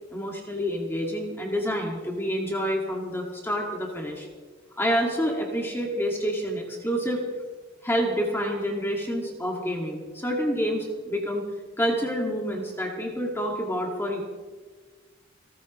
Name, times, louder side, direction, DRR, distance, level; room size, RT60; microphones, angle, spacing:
voice 1, 0.1-4.3 4.8-7.2 7.8-11.4 11.8-14.2, equal, 15° left, -1 dB, 2.0 m, -28 dB
27.5 x 13.5 x 3.1 m, 1.4 s
head